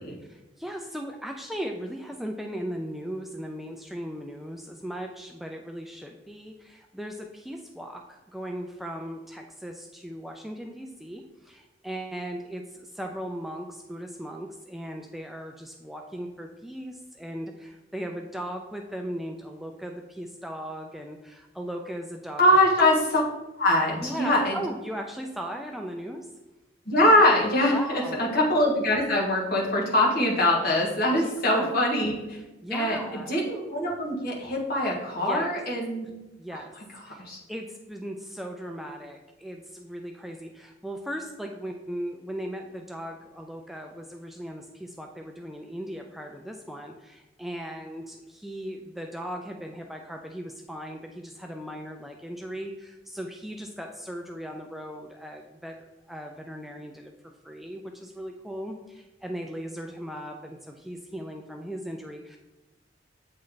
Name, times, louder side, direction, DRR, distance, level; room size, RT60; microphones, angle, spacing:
voice 1, 0.3-22.4 24.0-26.3 27.7-28.2 31.2-31.7 32.4-33.3 35.2-35.5 36.4-36.7 37.1-57.1 57.4-62.4, equal, ahead, 2 dB, 0.3 m, -38 dB
voice 2, 22.4-23.2 23.6-24.6 26.8-32.4 32.7-33.0 33.3-36.1 37.2-37.4, left 1 dB, 55° left, -4 dB, 1.6 m, -23 dB
8.2 x 3.2 x 3.9 m, 1.1 s
head